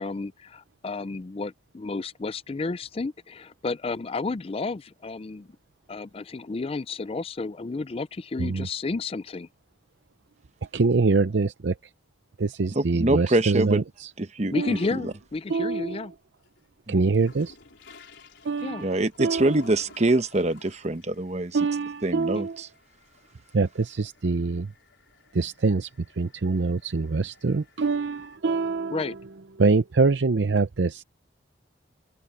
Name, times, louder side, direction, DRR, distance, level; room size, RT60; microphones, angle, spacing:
voice 1, 0.0-5.5 5.9-9.5 14.5-16.1 18.6-18.8 22.3-22.4 28.9-29.2, left 3 dB, 30° left, 0.4 m, -32 dB
voice 2, 10.7-11.7 12.4-14.1 14.5-14.8 15.5-16.0 16.9-17.6 18.4-18.9 19.2-19.5 21.5-22.5 23.5-24.7 25.3-25.9 26.2-29.0 29.6-31.0, right 4 dB, 75° right, 0.6 m, -24 dB
voice 3, 12.7-13.8 14.2-15.1 16.9-17.1 18.8-21.6 22.0-22.7, right 2 dB, 40° right, 0.9 m, -25 dB
sound 1, 15.3-15.6 16.1-28.4, left 4 dB, 85° left, 4.6 m, -55 dB
head